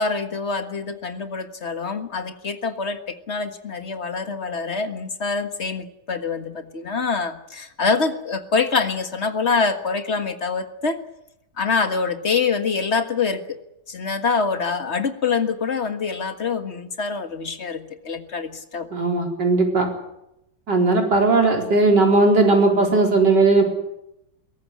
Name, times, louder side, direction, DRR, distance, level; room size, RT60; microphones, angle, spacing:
voice 1, 0.0-11.0 11.6-13.6 13.9-18.9, left 4 dB, 40° left, 8 dB, 1.8 m, -25 dB
voice 2, 18.9-19.9 20.7-23.6, right 3 dB, 75° right, 2 dB, 5.0 m, -17 dB
22.0 x 18.0 x 8.5 m, 0.85 s
omnidirectional pair, 1.9 m